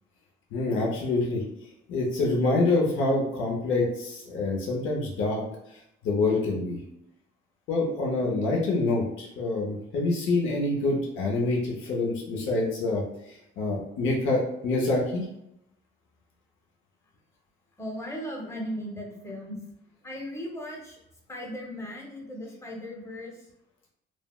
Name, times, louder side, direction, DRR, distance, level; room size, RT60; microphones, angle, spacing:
voice 1, 0.5-1.4 1.9-5.4 5.7-5.8 6.0-6.8 7.7-15.3, left 2 dB, 80° left, -2 dB, 0.6 m, -26 dB
voice 2, 17.8-19.6 20.0-21.0 21.3-23.5, equal, 15° left, -1 dB, 0.8 m, -37 dB
3.2 x 2.1 x 2.3 m, 0.80 s
cardioid pair, 90°, 20 cm